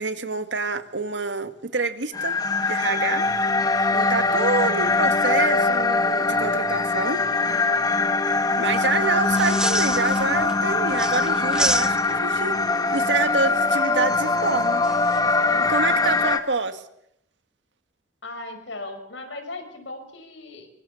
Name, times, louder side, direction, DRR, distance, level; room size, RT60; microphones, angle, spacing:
voice 1, 0.0-2.3 2.7-3.3 3.9-7.2 8.6-12.6 12.9-14.8 15.6-16.8, right 4 dB, 80° right, 10 dB, 1.9 m, -27 dB
sound 1, 2.1-16.4, left 3 dB, 20° left, 1.9 m, -22 dB
sound 2, 9.2-10.5 10.9-12.3 14.8-15.2, right 1 dB, 5° right, 0.9 m, -28 dB
voice 2, 18.2-20.7, left 2 dB, 90° left, 6 dB, 5.6 m, -37 dB
24.5 x 23.5 x 7.1 m, 0.74 s
head